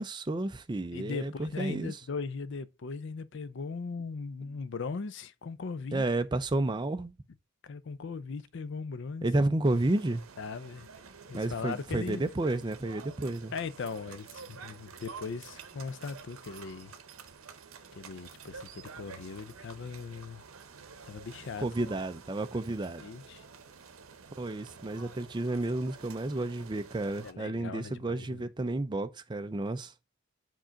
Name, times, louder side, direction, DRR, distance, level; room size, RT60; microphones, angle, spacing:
voice 1, 0.0-1.9 5.9-7.1 9.2-10.2 11.3-13.5 21.6-23.0 24.4-29.9, right 2 dB, 20° right, 0.4 m, -31 dB
voice 2, 0.9-6.0 7.6-9.3 10.4-10.9 11.3-12.2 13.5-16.9 17.9-20.4 21.0-22.0 23.0-23.4 27.2-28.4, left 4 dB, 60° left, 0.5 m, -39 dB
sound 1, 9.6-27.3, right 5 dB, 80° right, 0.8 m, -49 dB
5.0 x 3.8 x 5.6 m
head